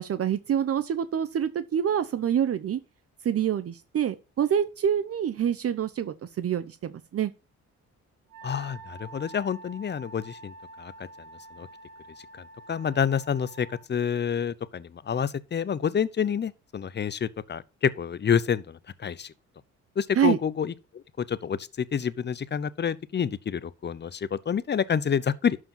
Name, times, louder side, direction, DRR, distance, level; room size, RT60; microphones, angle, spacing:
voice 1, 0.0-2.8 3.2-7.3 20.1-20.4, right 9 dB, 50° right, 0.8 m, -26 dB
Wind instrument woodwind instrument, 8.3-13.8, right 2 dB, 75° right, 2.0 m, -47 dB
voice 2, 8.4-10.9 11.6-11.7 12.7-19.3 20.0-25.6, left 7 dB, 35° left, 0.8 m, -28 dB
12.0 x 4.8 x 5.6 m
cardioid pair, 90°, 30 cm